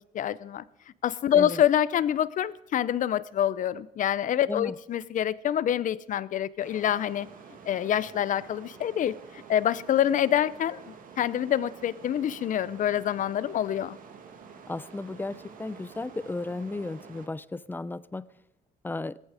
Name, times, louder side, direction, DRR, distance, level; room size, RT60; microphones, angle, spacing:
voice 1, 0.1-0.6 1.0-7.3 7.7-10.8 11.2-14.0, left 10 dB, 50° left, 19 dB, 0.7 m, -26 dB
sound 1, 6.6-17.3, right 6 dB, 55° right, 2.2 m, -48 dB
voice 2, 14.7-18.3 18.8-19.2, left 2 dB, 10° left, 19 dB, 0.5 m, -34 dB
17.0 x 14.0 x 5.0 m, 0.83 s
cardioid pair, 110°, 17 cm